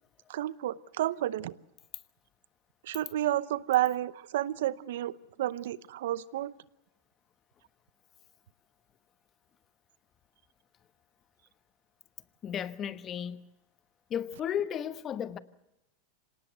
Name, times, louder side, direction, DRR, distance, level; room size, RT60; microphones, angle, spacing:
voice 1, 0.3-1.5 2.8-6.5, right 13 dB, 75° right, 0.8 m, -31 dB
voice 2, 12.4-13.4 14.1-15.4, left 9 dB, 35° left, 1.2 m, -34 dB
26.0 x 18.5 x 8.0 m
hypercardioid pair, 105°, 0 cm